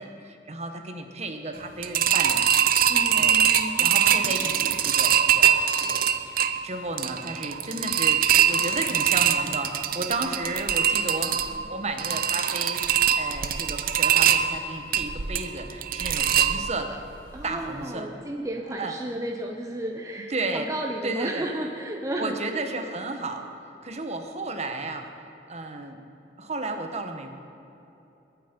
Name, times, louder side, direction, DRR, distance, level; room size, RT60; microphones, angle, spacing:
voice 1, 0.0-2.5 3.1-3.4 3.8-6.1 6.4-17.0 17.4-18.2 18.8-18.9 20.3-20.7 21.0-21.5 22.2-23.5 23.8-25.1 25.5-26.0 26.4-27.3, right 2 dB, 40° right, 6 dB, 1.2 m, -33 dB
sound 1, 1.8-17.0 17.4-17.5 17.8-17.9, right 9 dB, 55° right, 0.7 m, -23 dB
voice 2, 2.9-3.9 17.3-22.7, right 1 dB, 20° right, 1 dB, 0.8 m, -33 dB
21.5 x 9.3 x 5.3 m, 2.9 s
head